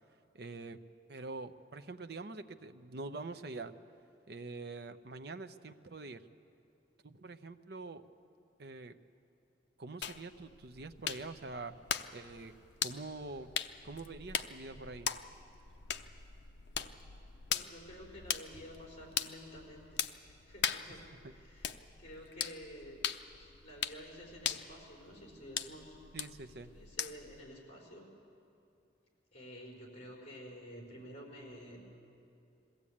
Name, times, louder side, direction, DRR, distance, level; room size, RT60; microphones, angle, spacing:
voice 1, 0.3-0.8 1.1-3.8 4.3-6.2 7.0-8.1 8.6-9.0 9.8-11.7 12.1-12.5 12.8-13.5 13.8-15.1 20.9-21.3 26.1-26.7, right 3 dB, 60° right, 9 dB, 0.7 m, -45 dB
sound 1, 10.0-27.4, left 9 dB, 70° left, 0.7 m, -41 dB
voice 2, 17.5-26.0 26.5-28.1 29.3-31.8, equal, 40° left, -2 dB, 4.5 m, -51 dB
21.5 x 15.5 x 8.6 m, 2.6 s
head